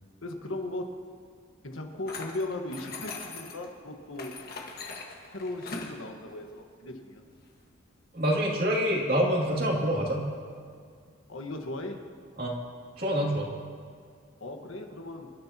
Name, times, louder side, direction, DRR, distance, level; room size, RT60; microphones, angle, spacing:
voice 1, 0.2-0.9 1.6-4.3 5.3-7.2 11.3-12.0 14.4-15.3, left 2 dB, 75° left, 3 dB, 1.5 m, -37 dB
sound 1, 2.1-3.7 4.2-6.0, left 3 dB, 45° left, 1.7 m, -40 dB
voice 2, 8.1-10.3 12.4-12.5 13.0-13.5, equal, 45° right, -2 dB, 2.7 m, -26 dB
27.0 x 13.0 x 2.9 m, 2.1 s
head